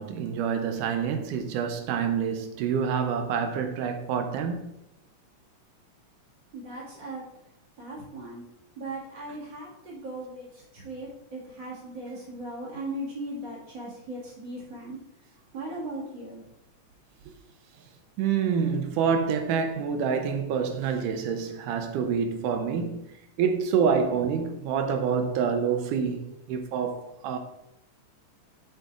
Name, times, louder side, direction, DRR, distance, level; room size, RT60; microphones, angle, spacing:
voice 1, 0.0-4.7 18.2-23.1 23.4-27.4, right 6 dB, 85° right, 2.2 m, -27 dB
voice 2, 6.5-7.2 7.8-8.4 8.8-15.0 15.5-16.4, right 1 dB, 40° right, 2.3 m, -38 dB
8.0 x 6.6 x 2.4 m
omnidirectional pair, 3.5 m